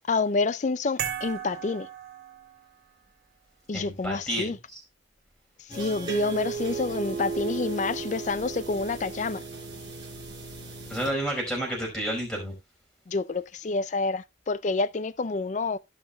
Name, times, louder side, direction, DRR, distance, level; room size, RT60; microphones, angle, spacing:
voice 1, 0.1-1.9 3.7-4.6 5.7-9.4 13.1-15.8, left 3 dB, 40° left, 0.4 m, -28 dB
sound 1, 1.0-2.9, right 9 dB, 60° right, 2.0 m, -36 dB
voice 2, 3.7-4.8 10.9-12.5, right 1 dB, 5° left, 5.0 m, -30 dB
sound 2, 5.7-11.1, right 4 dB, 25° right, 4.7 m, -35 dB
17.5 x 5.9 x 2.3 m
head